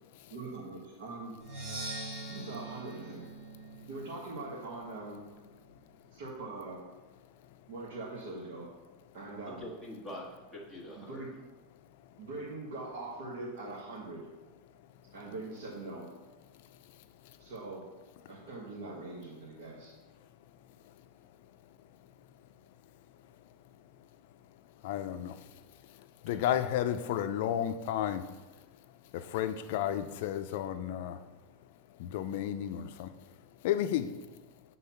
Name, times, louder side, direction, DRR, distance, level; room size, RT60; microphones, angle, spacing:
voice 1, 0.3-1.3 2.3-3.3 3.9-5.2 6.1-6.8 7.7-8.7 9.1-9.6 11.0-11.3 12.2-14.2 15.1-16.1 17.4-17.8 18.3-19.9, right 2 dB, 65° right, -5 dB, 1.5 m, -42 dB
Percussion, 1.4-5.2, right 2 dB, 40° right, 2.0 m, -43 dB
voice 2, 9.5-11.3 26.2-26.5, left 1 dB, 10° right, -3 dB, 1.4 m, -45 dB
voice 3, 24.8-25.4 26.0-28.3 29.1-31.2 32.0-33.1 33.6-34.2, left 10 dB, 55° left, 10 dB, 0.4 m, -32 dB
7.4 x 3.9 x 5.7 m, 1.2 s
supercardioid pair, 175°, 0 cm